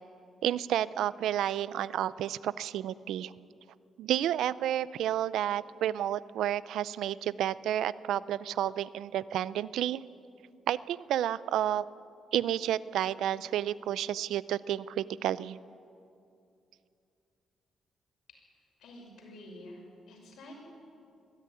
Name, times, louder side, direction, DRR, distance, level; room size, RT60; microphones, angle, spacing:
voice 1, 0.4-3.3 4.0-10.0 10.7-11.8 12.3-15.6, right 11 dB, 85° right, 18 dB, 0.5 m, -31 dB
voice 2, 18.8-20.6, left 1 dB, 80° left, 0 dB, 6.0 m, -49 dB
21.5 x 15.0 x 9.7 m, 2.6 s
cardioid pair, 110°, 0 cm